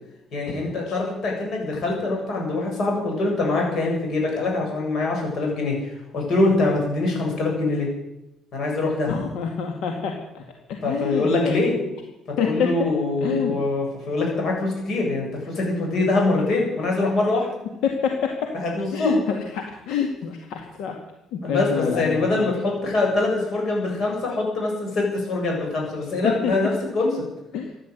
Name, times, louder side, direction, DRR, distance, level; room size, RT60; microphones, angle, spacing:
voice 1, 0.3-7.9 8.5-9.2 10.8-11.8 12.3-17.5 18.5-19.2 21.4-27.1, left 2 dB, 50° left, 0 dB, 7.7 m, -24 dB
voice 2, 9.1-10.4 10.7-11.6 12.4-12.5 13.2-13.6 17.8-17.9 18.9-21.0 21.3-22.5 26.2-26.5 27.5-27.7, left 6 dB, 80° left, 3 dB, 1.9 m, -27 dB
15.0 x 10.5 x 8.2 m, 0.90 s
cardioid pair, 130°, 0 cm